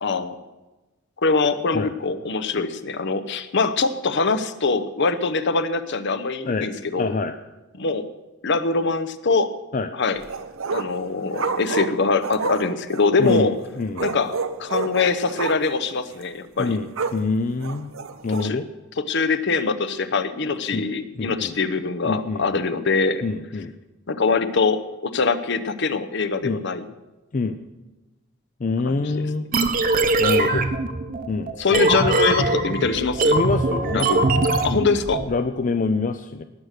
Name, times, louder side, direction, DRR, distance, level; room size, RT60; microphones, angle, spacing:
voice 1, 0.0-0.4 1.2-7.1 7.8-8.1 8.4-9.5 10.0-10.2 10.7-13.6 14.0-16.8 18.4-18.6 19.0-23.2 24.1-26.9 28.9-29.2 31.6-33.4 33.9-34.2 34.6-35.2, left 4 dB, 60° left, 12 dB, 0.8 m, -23 dB
voice 2, 7.0-7.3 9.7-9.9 13.2-14.1 16.6-17.9 18.2-18.6 20.7-20.9 21.2-21.5 22.1-22.6 23.2-23.7 26.4-26.6 27.3-27.6 28.6-29.5 30.2-30.7 31.3-31.8 33.3-34.3 34.6-34.9 35.3-36.4, left 3 dB, 40° left, 9 dB, 0.5 m, -26 dB
sound 1, 10.1-11.0 11.3-13.5 14.0-15.8 16.1-16.2 16.6-17.2 17.6-18.5, right 4 dB, 85° right, 0.8 m, -29 dB
sound 2, 29.5-35.2, right 2 dB, 45° right, 0.9 m, -22 dB
18.5 x 6.6 x 6.6 m, 1.1 s
head